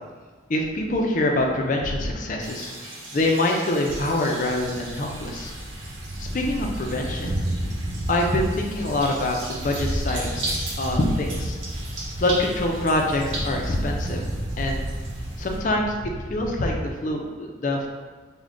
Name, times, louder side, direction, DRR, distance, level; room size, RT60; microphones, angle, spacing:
voice 1, 0.5-2.7 3.1-5.5 6.2-7.5 8.1-10.5 10.8-11.6 12.2-14.2 14.6-14.9 15.4-15.9 16.3-17.9, left 1 dB, 45° left, 1 dB, 0.4 m, -25 dB
sound 1, 2.4-15.6, right 2 dB, 80° right, 0.8 m, -38 dB
Thunder, 4.4-17.0, right 1 dB, 30° right, 0.3 m, -32 dB
3.6 x 2.2 x 3.6 m, 1.5 s
head